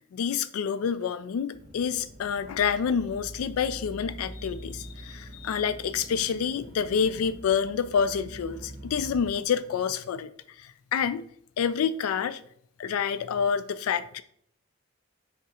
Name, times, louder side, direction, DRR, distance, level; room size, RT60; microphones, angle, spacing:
voice 1, 0.1-10.3 10.6-11.2 11.6-12.4 12.8-14.2, left 7 dB, 90° left, 0.3 m, -28 dB
sound 1, 1.5-9.3, right 1 dB, 45° right, 1.6 m, -44 dB
9.6 x 3.6 x 2.9 m
head